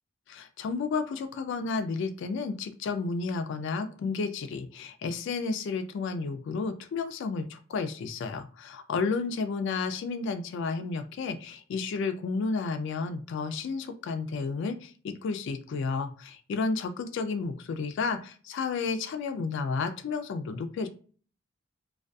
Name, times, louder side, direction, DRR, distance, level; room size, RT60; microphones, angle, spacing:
voice 1, 0.3-20.9, left 4 dB, 65° left, 8 dB, 0.3 m, -32 dB
2.5 x 2.2 x 2.2 m, 0.41 s
head